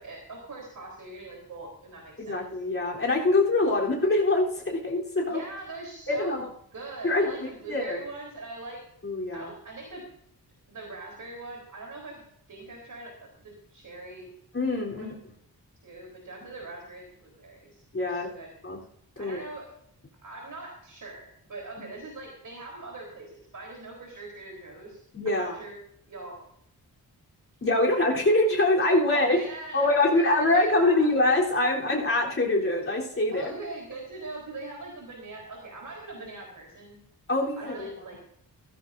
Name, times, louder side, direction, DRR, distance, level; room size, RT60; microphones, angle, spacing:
voice 1, 0.0-2.5 5.3-6.4 6.7-8.8 9.3-10.0 10.7-12.2 12.5-14.3 14.9-15.2 15.8-17.8 18.0-18.5 19.2-19.7 20.2-25.7 26.1-26.3 27.9-28.2 29.0-31.1 33.3-37.0 37.6-38.2, right 2 dB, 55° right, 0 dB, 4.0 m, -42 dB
voice 2, 2.2-5.4 6.1-6.5 7.0-7.3 7.7-8.0 9.0-9.5 14.5-15.1 17.9-18.3 18.6-18.8 19.2-19.4 25.1-25.6 27.6-29.4 29.7-33.5 37.3-37.9, left 2 dB, 35° left, -3 dB, 3.7 m, -24 dB
17.0 x 14.0 x 2.7 m, 0.69 s
wide cardioid pair, 130°, 38 cm